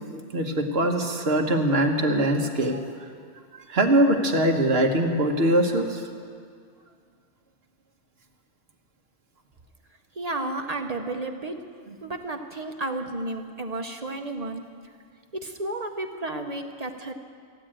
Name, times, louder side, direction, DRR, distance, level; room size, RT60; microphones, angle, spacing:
voice 1, 0.1-2.8 3.7-6.0, right 1 dB, 55° right, 3 dB, 1.4 m, -22 dB
voice 2, 10.2-11.6 12.0-14.6 15.3-17.1, right 2 dB, 35° right, 5 dB, 0.8 m, -32 dB
15.5 x 8.8 x 8.9 m, 2.2 s
omnidirectional pair, 1.3 m